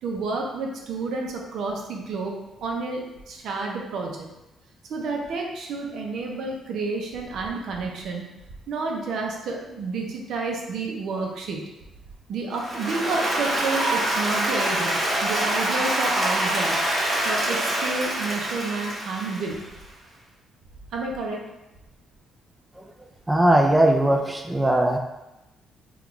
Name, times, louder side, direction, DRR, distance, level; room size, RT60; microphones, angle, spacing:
voice 1, 0.0-4.3 4.9-8.3 8.7-11.6 12.3-16.8 17.2-19.6 20.9-21.4, right 3 dB, 70° right, 0 dB, 0.6 m, -30 dB
Applause, 12.6-19.8, right 1 dB, 40° right, 1.3 m, -25 dB
voice 2, 23.3-25.0, right 1 dB, 15° right, 2 dB, 0.3 m, -19 dB
3.5 x 2.3 x 3.0 m, 0.96 s
cardioid pair, 90°, 0 cm